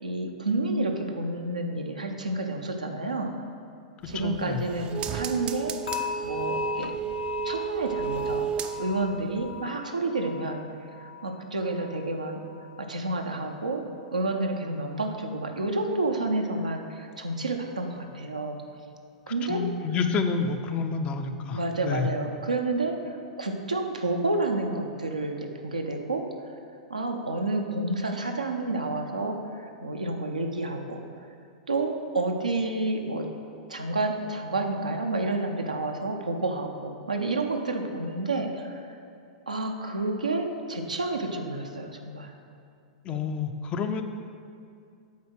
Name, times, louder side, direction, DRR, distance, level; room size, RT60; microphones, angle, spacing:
voice 1, 0.0-3.3 4.1-6.9 7.4-8.5 8.8-10.7 11.0-12.4 12.8-13.8 14.1-18.6 19.3-19.6 21.5-26.3 26.9-31.0 31.7-33.3 33.7-39.0 39.5-42.3, right 2 dB, 85° right, 3 dB, 0.7 m, -30 dB
sound 1, 4.0-9.2 9.5-9.6, right 8 dB, 25° right, 0.5 m, -33 dB
voice 2, 4.2-4.7 19.3-22.1 43.0-44.0, left 5 dB, 30° left, 7 dB, 0.5 m, -29 dB
sound 2, 5.9-12.9 13.2-13.6 14.1-14.2, left 7 dB, 75° left, 1.0 m, -38 dB
8.4 x 4.3 x 6.2 m, 2.4 s
figure-of-eight pair, 100°, 4 cm